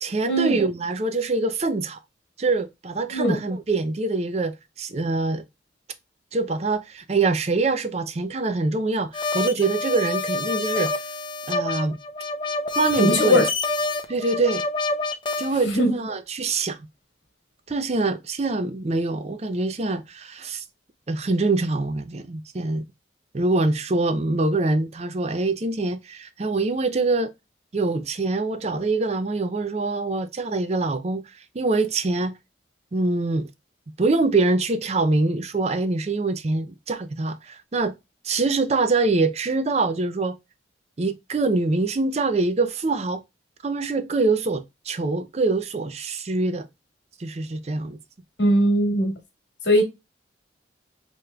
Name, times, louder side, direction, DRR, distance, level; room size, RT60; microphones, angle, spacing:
voice 1, 0.0-2.0 2.4-5.4 6.3-11.1 11.5-12.0 12.7-13.5 14.1-14.6 15.4-16.8 17.7-20.6 21.1-22.8 23.3-27.3 27.7-31.2 31.5-32.3 32.9-33.5 34.0-38.0 38.2-40.4 41.0-43.2 43.6-46.7 47.2-48.0, right 3 dB, 35° right, 0.4 m, -24 dB
sound 1, 9.1-15.5, left 3 dB, 25° left, 0.5 m, -27 dB
voice 2, 13.0-13.4 15.7-15.9 48.4-49.1 49.6-49.8, equal, 65° left, 1.7 m, -19 dB
4.9 x 3.0 x 2.3 m
head